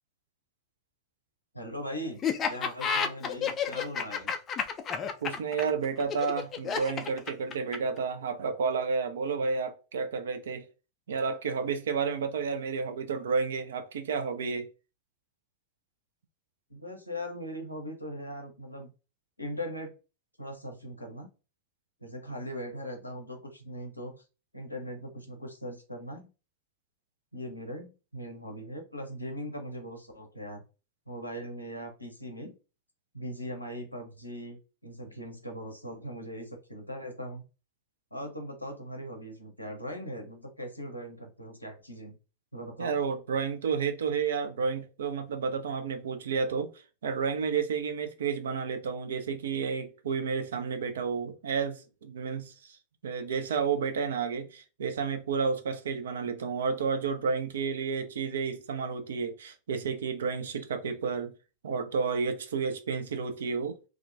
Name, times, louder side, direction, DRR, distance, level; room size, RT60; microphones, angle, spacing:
voice 1, 1.5-2.2 2.5-4.3 16.7-18.9 19.4-19.9 20.4-21.3 22.0-24.2 24.5-26.3 27.3-30.6 31.1-32.5 33.1-37.4 38.1-42.1 42.5-43.0, equal, 85° left, 0.6 m, -40 dB
Laughter, 2.2-8.0, left 7 dB, 25° left, 0.3 m, -30 dB
voice 2, 5.2-10.7 11.1-14.7 42.8-46.7 47.0-52.8 53.0-61.3 61.6-63.8, right 5 dB, 65° right, 0.4 m, -31 dB
2.4 x 2.1 x 2.4 m
figure-of-eight pair, 90°, 0 cm